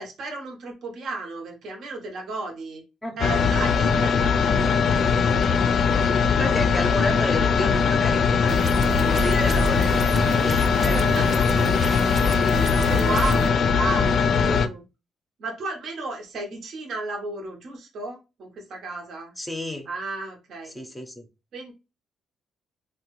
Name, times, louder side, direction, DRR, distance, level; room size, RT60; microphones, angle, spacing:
voice 1, 0.0-2.8 3.2-4.3 10.9-11.7 12.9-14.8 15.4-19.3 19.9-20.7 21.5-21.7, right 2 dB, 65° right, 0.9 m, -33 dB
sound 1, 3.2-14.7, left 6 dB, 60° left, 0.3 m, -21 dB
voice 2, 4.5-5.0 6.4-8.6 8.9-11.0 19.4-19.9 20.7-21.3, left 1 dB, 10° left, 0.6 m, -32 dB
sound 2, 8.5-13.5, right 3 dB, 40° right, 0.5 m, -30 dB
2.9 x 2.2 x 3.0 m
cardioid pair, 90°, 0 cm